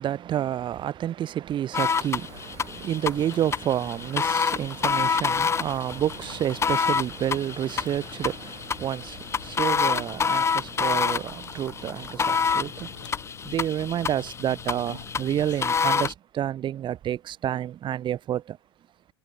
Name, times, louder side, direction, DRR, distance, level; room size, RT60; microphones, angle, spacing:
voice 1, 0.0-13.0 13.4-18.6, right 11 dB, 35° right, 2.5 m, -29 dB
sound 1, 1.7-16.1, left 6 dB, 20° left, 1.6 m, -28 dB
sound 2, 2.1-15.6, left 9 dB, 85° left, 3.9 m, -49 dB
hypercardioid pair, 105°, 15 cm